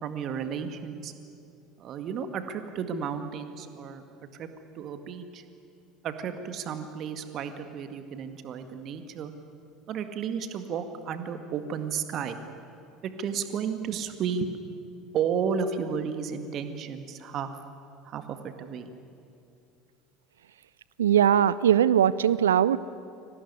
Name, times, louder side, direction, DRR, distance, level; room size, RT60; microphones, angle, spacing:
voice 1, 0.0-1.1 1.8-4.0 4.3-4.5 4.7-5.4 6.0-9.3 9.9-12.4 13.2-14.5 15.1-17.5 18.0-18.9, right 7 dB, 45° right, 8 dB, 2.0 m, -33 dB
voice 2, 21.0-22.8, right 9 dB, 70° right, 18 dB, 0.5 m, -20 dB
24.0 x 18.0 x 9.7 m, 2.6 s
figure-of-eight pair, 65°, 0 cm